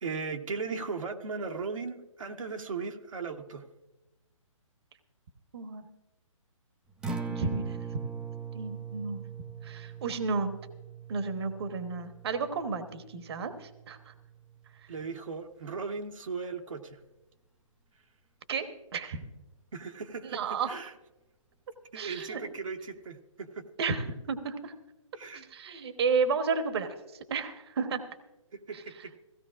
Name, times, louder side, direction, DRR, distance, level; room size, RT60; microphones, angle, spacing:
voice 1, 0.0-3.6 14.9-17.0 19.7-20.9 21.9-23.6 25.1-25.5 28.5-29.1, right 4 dB, 75° right, 3 dB, 1.1 m, -37 dB
voice 2, 5.5-5.8 7.3-7.8 8.5-9.2 9.6-10.5 11.1-14.1 18.5-18.7 18.9-19.2 20.2-20.7 21.9-22.4 23.8-24.7 25.3-26.9 27.3-28.0 28.7-28.8, right 5 dB, 50° right, 9 dB, 1.1 m, -32 dB
Acoustic guitar, 6.9-15.1, right 6 dB, 5° right, 0.4 m, -41 dB
16.5 x 16.5 x 2.5 m, 1.0 s
hypercardioid pair, 145°, 17 cm